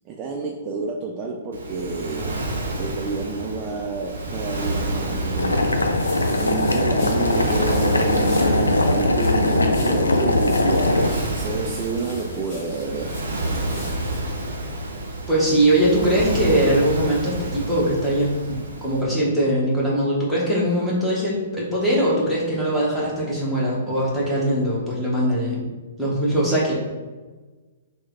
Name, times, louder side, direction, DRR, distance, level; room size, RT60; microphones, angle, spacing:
voice 1, 0.1-2.4 2.8-5.7 6.4-13.2, right 4 dB, 30° right, 0 dB, 0.3 m, -29 dB
Waves surf, 1.5-19.0, right 1 dB, 65° right, 0.6 m, -30 dB
Boiling, 5.4-11.1, left 1 dB, 80° left, 0.3 m, -20 dB
sound 1, 5.6-14.2, left 2 dB, 40° left, 1.1 m, -41 dB
voice 2, 15.3-25.7 26.0-26.7, right 1 dB, 5° left, -7 dB, 1.0 m, -21 dB
3.1 x 2.1 x 3.7 m, 1.3 s
figure-of-eight pair, 115°, 0 cm